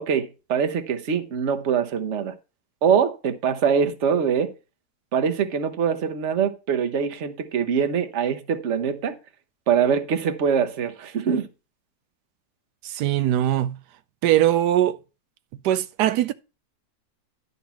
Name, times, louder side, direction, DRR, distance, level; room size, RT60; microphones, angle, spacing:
voice 1, 0.0-2.3 2.8-4.5 5.1-9.2 9.7-11.5, right 7 dB, 50° right, 1.2 m, -23 dB
voice 2, 12.8-13.8 14.2-15.0 15.6-16.3, right 12 dB, 90° right, 1.2 m, -21 dB
11.0 x 4.2 x 5.7 m
omnidirectional pair, 1.7 m